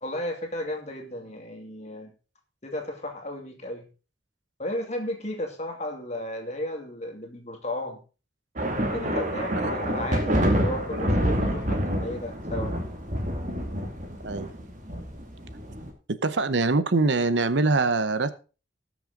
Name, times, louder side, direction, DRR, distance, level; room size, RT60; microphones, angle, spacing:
voice 1, 0.0-2.1 2.6-3.9 4.6-8.0 8.8-12.8, left 1 dB, 40° left, 4 dB, 2.4 m, -34 dB
sound 1, 8.6-15.9, equal, 40° right, 2.3 m, -27 dB
voice 2, 16.2-18.3, right 3 dB, 70° right, 13 dB, 0.8 m, -23 dB
18.5 x 6.2 x 3.8 m, 0.33 s
head